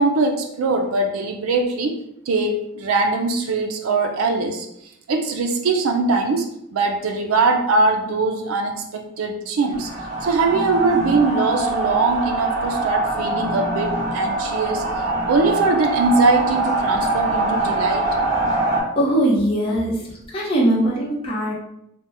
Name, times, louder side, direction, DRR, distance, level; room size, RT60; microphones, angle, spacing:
voice 1, 0.0-2.0 2.3-4.7 5.1-9.9 10.2-14.9 15.2-18.1, right 3 dB, 90° right, 3 dB, 0.4 m, -21 dB
sound 1, 9.7-18.8, right 2 dB, 30° right, 1.0 m, -23 dB
voice 2, 19.0-21.5, right 1 dB, 25° left, -4 dB, 0.7 m, -21 dB
2.7 x 2.1 x 3.4 m, 0.78 s
head